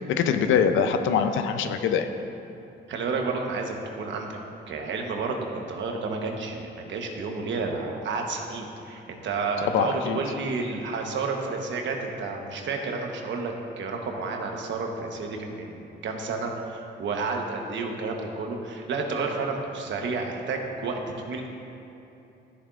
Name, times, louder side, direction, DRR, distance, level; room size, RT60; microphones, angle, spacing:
voice 1, 0.1-2.1 9.7-10.2, left 7 dB, 80° left, 8 dB, 0.6 m, -23 dB
voice 2, 2.9-4.3 4.7-21.5, right 4 dB, 70° right, 2 dB, 1.1 m, -31 dB
13.0 x 7.0 x 2.5 m, 2.9 s
cardioid pair, 90°, 20 cm